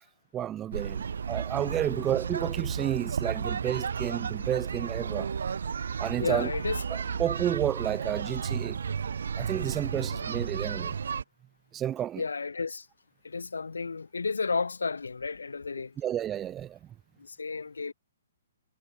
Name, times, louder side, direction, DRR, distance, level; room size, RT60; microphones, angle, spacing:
voice 1, 0.3-5.3 6.0-6.5 7.2-8.8 9.4-10.9 11.7-12.2 16.0-16.8, right 11 dB, 20° right, 0.4 m, -31 dB
sound 1, 0.7-11.2, right 6 dB, 70° right, 1.3 m, -33 dB
voice 2, 6.2-6.8 10.1-10.3 12.2-12.9 13.2-15.9 17.2-17.9, left 4 dB, 80° left, 1.7 m, -32 dB
figure-of-eight pair, 130°, 0 cm